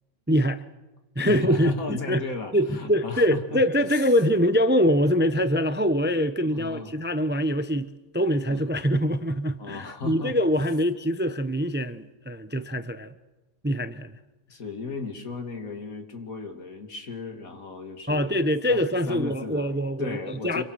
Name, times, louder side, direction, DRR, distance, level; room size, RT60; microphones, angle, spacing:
voice 1, 0.3-0.6 1.2-2.2 2.5-13.1 13.6-14.2 18.1-20.6, equal, 10° right, 0.5 m, -24 dB
voice 2, 1.2-3.6 3.9-4.1 6.5-6.9 8.5-8.6 9.6-10.4 14.5-18.4 18.7-18.8 19.1-20.6, left 4 dB, 80° left, 2.8 m, -35 dB
27.0 x 24.0 x 6.3 m
omnidirectional pair, 1.5 m